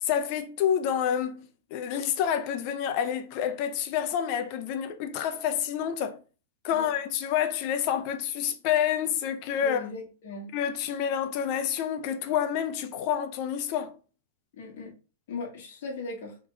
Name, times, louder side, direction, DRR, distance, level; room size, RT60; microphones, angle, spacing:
voice 1, 0.0-6.2 6.6-9.8 10.5-13.9, left 9 dB, 40° left, 0.6 m, -28 dB
voice 2, 9.6-10.5 14.5-14.9 15.3-16.4, left 3 dB, 60° left, 1.4 m, -38 dB
3.5 x 3.1 x 4.6 m
supercardioid pair, 145°, 0 cm